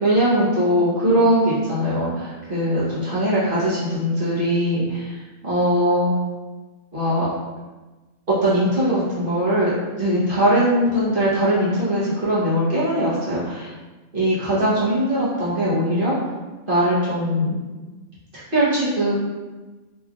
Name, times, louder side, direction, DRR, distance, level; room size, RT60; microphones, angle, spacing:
voice 1, 0.0-5.2 5.4-6.1 6.9-7.3 8.3-9.7 10.0-13.7 14.1-16.1 16.7-17.6 18.5-19.2, equal, 40° right, -9 dB, 1.1 m, -20 dB
3.1 x 3.1 x 2.4 m, 1.2 s
omnidirectional pair, 1.5 m